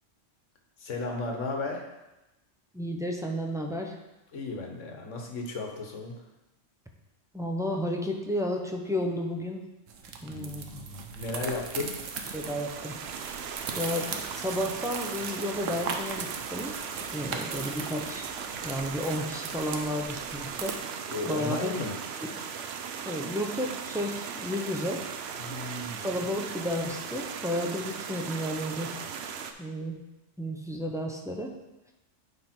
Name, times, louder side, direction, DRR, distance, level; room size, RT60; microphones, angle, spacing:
voice 1, 0.8-1.9 4.3-6.2 10.3-12.0 21.1-21.9 25.4-26.0, left 3 dB, 75° left, 2 dB, 1.4 m, -35 dB
voice 2, 2.7-4.0 7.3-9.7 10.2-10.8 12.3-12.9 13.7-16.7 17.1-20.8 21.3-21.8 23.1-25.0 26.0-28.9 29.6-30.0 30.4-31.5, equal, 5° right, 0 dB, 0.4 m, -32 dB
sound 1, 9.9-20.8, right 5 dB, 85° right, 1.1 m, -39 dB
sound 2, 11.9-29.5, right 6 dB, 65° right, 0.8 m, -38 dB
9.7 x 3.5 x 4.4 m, 0.99 s
omnidirectional pair, 1.3 m